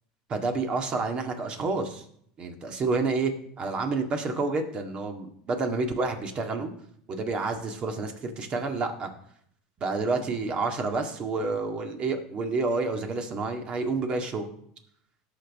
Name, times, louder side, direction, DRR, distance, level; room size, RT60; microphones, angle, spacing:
voice 1, 0.3-2.0 2.4-6.7 7.1-9.1 9.8-14.5, right 3 dB, 35° right, 5 dB, 1.9 m, -29 dB
17.5 x 6.5 x 3.6 m, 0.67 s
supercardioid pair, 110°, 3 cm